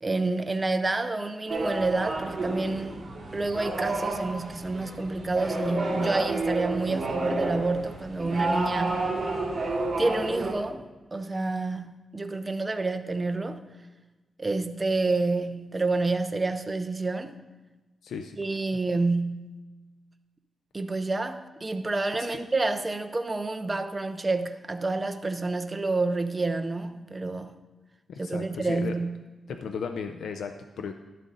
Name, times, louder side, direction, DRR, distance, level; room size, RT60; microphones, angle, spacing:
voice 1, 0.0-3.0 3.3-9.1 10.0-13.6 14.4-17.4 18.4-19.5 20.7-27.5 28.2-29.2, right 3 dB, 20° right, 0.5 m, -28 dB
sound 1, 1.5-10.5, right 2 dB, 35° right, 2.4 m, -30 dB
voice 2, 18.0-18.4 28.1-29.0 29.5-30.9, left 6 dB, 85° left, 0.5 m, -35 dB
11.5 x 7.5 x 3.9 m
wide cardioid pair, 150°, 0 cm